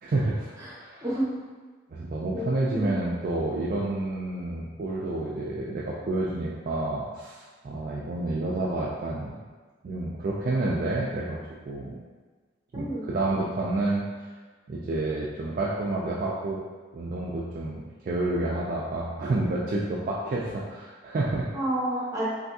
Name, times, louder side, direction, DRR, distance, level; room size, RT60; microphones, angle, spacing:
voice 1, 0.0-1.0 1.9-9.4 9.8-11.4 11.7-12.0 12.7-14.1 14.7-16.6 16.9-21.5, right 2 dB, 45° right, -5 dB, 0.3 m, -29 dB
voice 2, 2.3-2.9 12.7-13.1 21.5-22.2, right 1 dB, 15° right, -7 dB, 0.8 m, -30 dB
3.3 x 2.6 x 2.7 m, 1.4 s
head